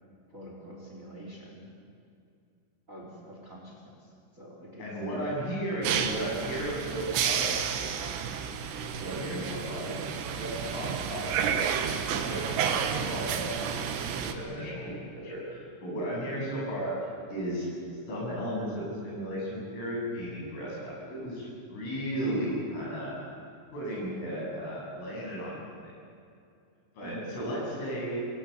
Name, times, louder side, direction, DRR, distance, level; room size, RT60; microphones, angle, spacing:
voice 1, 0.3-1.7 2.9-4.9 5.2-5.3 6.5-6.9 16.3-16.4 22.4-22.6 27.0-27.4, equal, 15° right, -1 dB, 3.9 m, -45 dB
voice 2, 4.8-7.5 8.9-11.7 12.1-13.6 14.1-17.0 17.3-17.7 18.1-23.2 23.7-25.5 25.8-25.9 27.0-28.2, equal, 85° left, -3 dB, 10.5 m, -35 dB
sound 1, 5.8-14.3, right 7 dB, 70° right, 3.4 m, -31 dB
27.5 x 20.0 x 8.3 m, 2.4 s
omnidirectional pair, 5.6 m